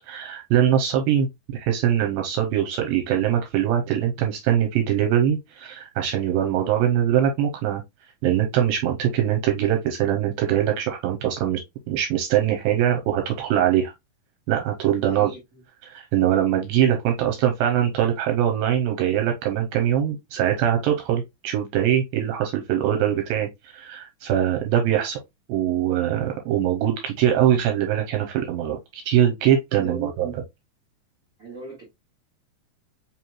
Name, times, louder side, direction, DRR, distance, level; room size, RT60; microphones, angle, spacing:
voice 1, 0.1-1.3 1.5-7.8 8.2-11.6 11.9-13.9 14.5-15.3 15.9-25.2 25.5-30.3, right 10 dB, 80° right, 2.4 m, -22 dB
voice 2, 15.0-15.6 26.8-26.9 29.7-30.3 31.4-31.8, right 5 dB, 50° right, 1.0 m, -36 dB
5.4 x 3.0 x 2.2 m
omnidirectional pair, 4.3 m